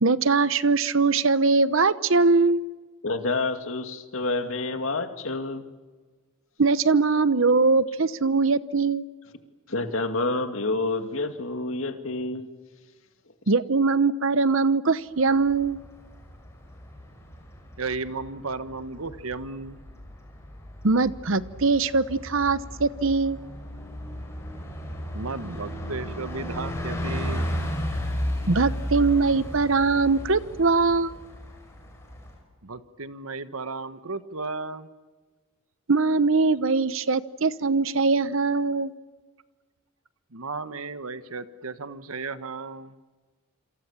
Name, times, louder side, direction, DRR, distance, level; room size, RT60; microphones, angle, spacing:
voice 1, 0.0-2.6 6.6-9.0 13.5-15.8 20.8-23.4 28.5-31.1 35.9-38.9, right 4 dB, 65° right, 15 dB, 0.9 m, -22 dB
voice 2, 3.0-5.6 9.7-12.5, left 2 dB, 65° left, 7 dB, 2.3 m, -28 dB
Bus, 15.3-32.4, equal, 15° left, 6.0 m, -34 dB
voice 3, 17.8-19.8 25.1-27.5 32.6-34.9 40.3-42.9, right 3 dB, 85° right, 11 dB, 1.5 m, -34 dB
28.0 x 26.5 x 7.4 m, 1.3 s
head